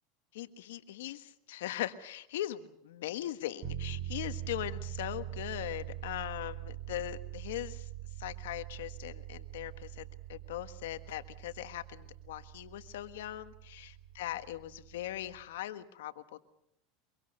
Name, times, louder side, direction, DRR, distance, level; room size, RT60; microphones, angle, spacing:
voice 1, 0.3-7.9 8.2-16.4, left 13 dB, 85° left, 11 dB, 1.5 m, -40 dB
sound 1, 3.6-15.5, right 12 dB, 50° right, 6.1 m, -43 dB
24.5 x 23.5 x 6.7 m, 0.79 s
supercardioid pair, 130°, 0 cm